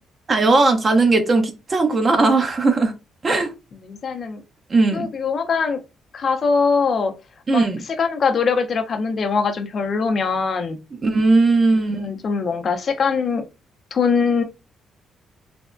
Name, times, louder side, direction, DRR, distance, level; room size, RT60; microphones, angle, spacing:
voice 1, 0.3-2.9 3.2-3.5 4.7-5.1 7.5-7.8 11.0-12.1, right 3 dB, 35° right, 0.6 m, -18 dB
voice 2, 3.7-4.4 4.9-5.8 6.1-7.1 7.5-7.6 8.0-10.8 11.9-13.5 13.9-14.4, left 5 dB, 50° left, 0.6 m, -22 dB
3.3 x 2.1 x 2.4 m
cardioid pair, 90°, 0 cm